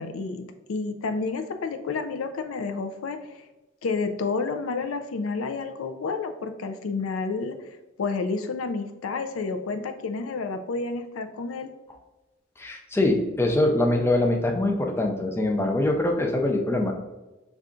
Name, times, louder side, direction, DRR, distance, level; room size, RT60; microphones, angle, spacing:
voice 1, 0.0-3.4 3.8-7.7 8.0-11.7, left 4 dB, 80° left, 7 dB, 0.4 m, -30 dB
voice 2, 12.6-16.9, left 1 dB, 10° left, 2 dB, 0.4 m, -23 dB
5.5 x 2.4 x 3.7 m, 1.1 s
head